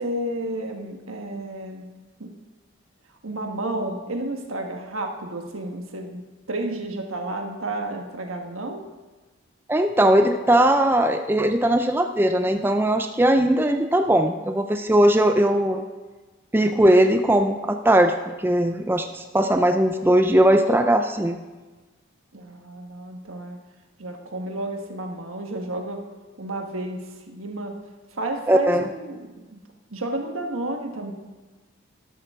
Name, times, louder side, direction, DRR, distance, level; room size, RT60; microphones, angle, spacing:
voice 1, 0.0-1.9 2.2-2.3 3.2-8.8 22.3-23.6 24.0-26.1 26.4-27.8 28.1-29.6 29.9-31.1, right 1 dB, 80° right, 3 dB, 1.4 m, -31 dB
voice 2, 9.7-15.9 16.5-21.4 28.5-28.8, right 1 dB, 10° right, 6 dB, 0.4 m, -19 dB
12.5 x 12.5 x 3.6 m, 1.3 s
head